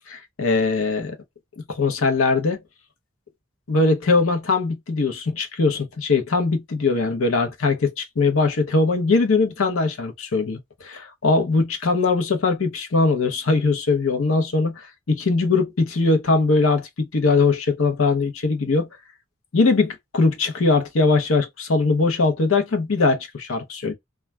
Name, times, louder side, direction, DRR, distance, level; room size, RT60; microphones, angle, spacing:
voice 1, 0.1-1.2 1.7-2.6 3.7-18.9 19.5-23.9, left 3 dB, 85° left, 0.7 m, -21 dB
2.3 x 2.2 x 3.1 m
head